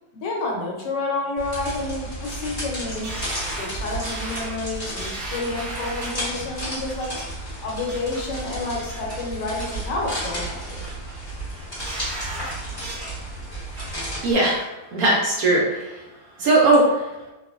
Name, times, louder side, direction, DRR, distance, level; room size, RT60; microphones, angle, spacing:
voice 1, 0.1-3.1 3.5-7.1 7.6-10.8, left 2 dB, 75° left, -1 dB, 1.2 m, -29 dB
sound 1, 1.4-14.3, right 1 dB, 20° left, 0.7 m, -33 dB
sound 2, 3.0-6.3 6.9-7.2 7.6-8.2 8.6-9.2 9.6-10.2 10.6-11.1 11.5-13.1 13.5-14.1 14.5-14.6, right 1 dB, 50° right, 0.5 m, -36 dB
voice 2, 14.2-14.6 14.9-16.0 16.4-17.0, right 2 dB, 70° right, -3 dB, 0.8 m, -19 dB
2.9 x 2.4 x 2.4 m, 1.0 s
omnidirectional pair, 2.0 m